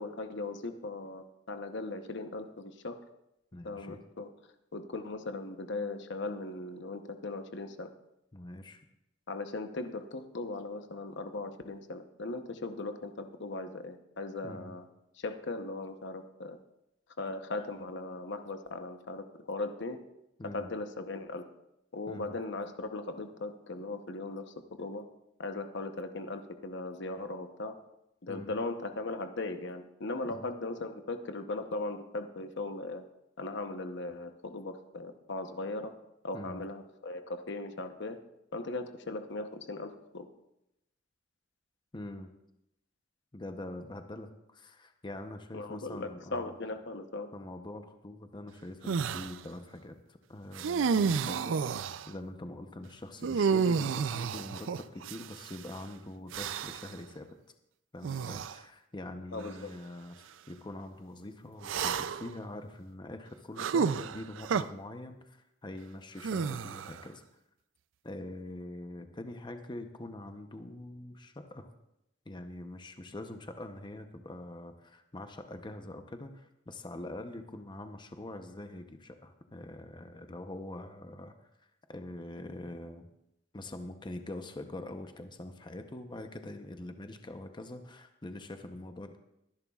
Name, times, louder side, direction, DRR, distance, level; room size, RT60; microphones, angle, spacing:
voice 1, 0.0-3.0 3.6-4.3 4.7-7.9 9.3-14.8 15.2-16.6 17.2-20.0 20.5-21.4 21.9-25.1 25.4-27.7 28.2-33.0 33.4-35.9 36.2-38.2 38.5-40.3 45.5-47.3 59.3-59.7, left 2 dB, 65° left, 8 dB, 0.9 m, -38 dB
voice 2, 3.5-4.0 8.3-8.8 14.4-14.8 20.4-20.7 22.1-22.4 28.3-28.6 30.3-30.5 36.3-36.6 41.9-42.3 43.3-46.5 47.3-57.3 57.9-67.2 68.0-71.7 72.3-81.3 81.6-83.1 83.5-89.2, left 1 dB, 25° left, 6 dB, 0.7 m, -44 dB
sound 1, 48.9-49.3 50.6-52.1 53.2-55.6 56.3-56.9 58.0-58.6 59.4-59.5 61.6-62.3 63.6-64.6 66.2-67.0, right 6 dB, 75° right, 0.4 m, -31 dB
24.0 x 11.0 x 2.4 m, 0.85 s
head